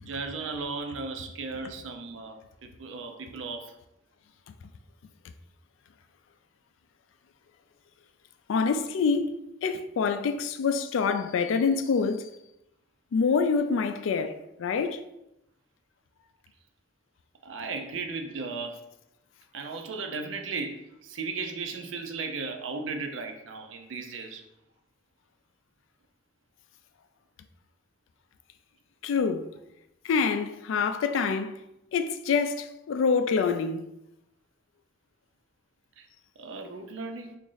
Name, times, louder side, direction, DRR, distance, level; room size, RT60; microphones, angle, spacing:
voice 1, 0.0-3.8 17.4-18.8 19.5-24.4 36.0-36.1 36.4-37.4, right 4 dB, 80° right, 0.5 m, -36 dB
voice 2, 8.5-9.3 9.6-12.3 13.1-15.0 29.0-29.5 30.0-31.6 31.9-33.9, left 5 dB, 85° left, 0.3 m, -26 dB
3.0 x 2.5 x 3.8 m
head